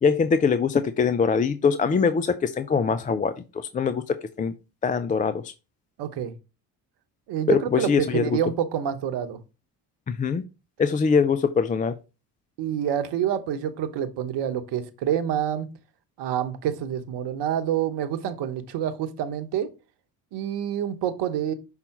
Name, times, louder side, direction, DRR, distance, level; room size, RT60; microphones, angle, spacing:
voice 1, 0.0-4.5 4.8-5.5 7.5-8.4 10.1-10.4 10.8-12.0, left 5 dB, 20° left, 11 dB, 0.4 m, -23 dB
voice 2, 6.0-6.3 7.3-9.4 12.6-15.7 16.2-19.7 20.3-21.5, right 9 dB, 55° right, 10 dB, 1.1 m, -27 dB
5.6 x 4.0 x 4.3 m, 0.29 s
hypercardioid pair, 55°, 48 cm